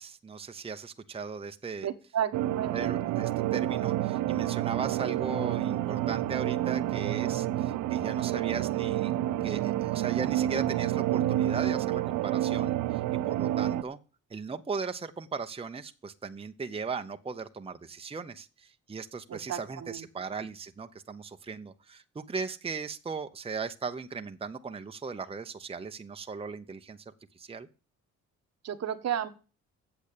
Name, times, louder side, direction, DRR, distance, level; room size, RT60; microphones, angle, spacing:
voice 1, 0.0-1.9 2.7-9.1 9.4-14.0 14.3-27.0 27.3-27.7, right 5 dB, 20° right, 7 dB, 0.8 m, -38 dB
voice 2, 1.8-2.9 19.3-20.0 28.6-29.3, right 9 dB, 60° right, 9 dB, 1.2 m, -33 dB
sound 1, 2.3-13.8, right 13 dB, 90° right, 0.6 m, -29 dB
8.6 x 7.0 x 8.5 m, 0.35 s
cardioid pair, 90°, 30 cm